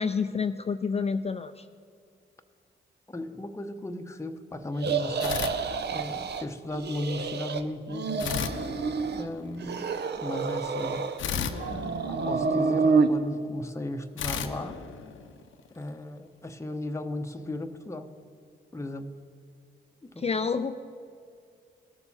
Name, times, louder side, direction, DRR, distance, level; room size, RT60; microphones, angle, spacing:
voice 1, 0.0-1.7 20.2-20.7, left 5 dB, 30° left, 9 dB, 0.4 m, -28 dB
voice 2, 3.1-5.5 5.9-8.5 9.1-11.1 12.1-14.8 15.7-18.1 18.7-19.2 20.0-20.3, left 1 dB, 15° left, 5 dB, 0.8 m, -36 dB
sound 1, 4.8-6.4 6.7-7.6 7.9-9.3 9.6-11.2 11.6-13.1, right 4 dB, 55° right, 0.7 m, -28 dB
sound 2, 5.2-6.3 8.2-9.6 11.2-12.9 14.2-15.7, left 7 dB, 80° left, 0.7 m, -35 dB
18.0 x 6.9 x 4.2 m, 2.4 s
supercardioid pair, 50°, 20 cm